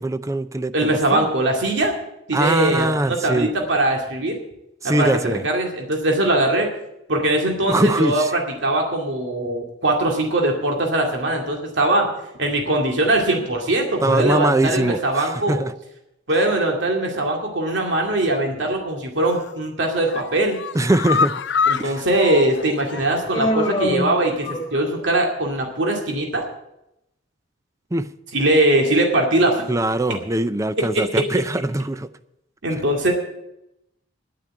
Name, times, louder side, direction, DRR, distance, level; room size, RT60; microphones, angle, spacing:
voice 1, 0.0-1.3 2.3-3.5 4.8-5.4 7.7-8.3 14.0-15.7 20.7-21.3 21.8-22.0 27.9-28.1 29.7-32.1, right 1 dB, 15° right, 13 dB, 0.5 m, -22 dB
voice 2, 0.7-1.9 2.3-4.4 4.8-6.7 7.1-12.1 12.4-15.6 16.3-20.6 21.7-26.5 28.3-29.6 30.9-31.2 32.6-33.1, right 1 dB, 65° right, 1 dB, 2.3 m, -21 dB
sound 1, 19.2-19.6 20.0-23.4 23.7-23.8 24.1-24.2, left 5 dB, 60° left, 0.5 m, -26 dB
Human voice, 23.3-25.0, equal, 20° left, 2.5 m, -25 dB
10.5 x 9.5 x 8.8 m, 0.85 s
head